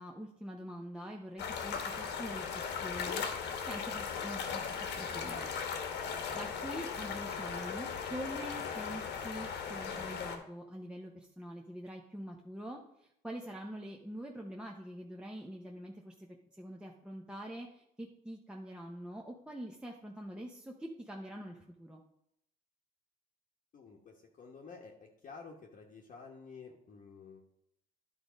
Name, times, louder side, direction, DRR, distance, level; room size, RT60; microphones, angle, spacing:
voice 1, 0.0-16.3 16.5-22.0, equal, 5° right, 0 dB, 0.9 m, -45 dB
sound 1, 1.4-10.4, left 6 dB, 70° left, 1.3 m, -38 dB
voice 2, 23.7-27.4, left 5 dB, 45° left, -2 dB, 1.2 m, -51 dB
10.5 x 3.9 x 5.1 m, 0.77 s
supercardioid pair, 90°, 18 cm